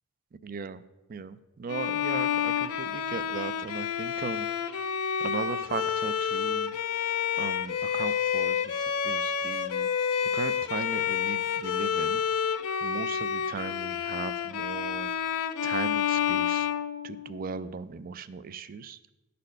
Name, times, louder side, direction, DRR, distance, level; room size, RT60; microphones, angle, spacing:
voice 1, 0.4-0.8 1.1-4.9 5.2-6.8 7.4-9.9 10.3-12.2 12.8-15.1 15.6-16.7 17.0-19.0, right 5 dB, 40° right, 15 dB, 0.4 m, -37 dB
Bowed string instrument, 1.7-17.6, left 8 dB, 75° left, 0.5 m, -29 dB
10.5 x 4.2 x 6.4 m, 1.1 s
head